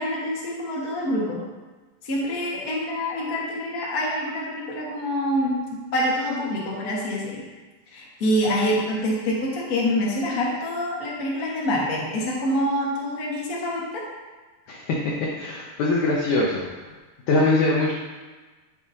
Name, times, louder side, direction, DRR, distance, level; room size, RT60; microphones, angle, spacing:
voice 1, 0.0-1.4 2.0-7.4 7.9-14.0, equal, 55° left, -4 dB, 1.0 m, -26 dB
voice 2, 14.7-16.6 17.3-17.9, left 2 dB, 75° left, -3 dB, 1.7 m, -22 dB
12.0 x 7.1 x 2.8 m, 1.3 s
omnidirectional pair, 4.6 m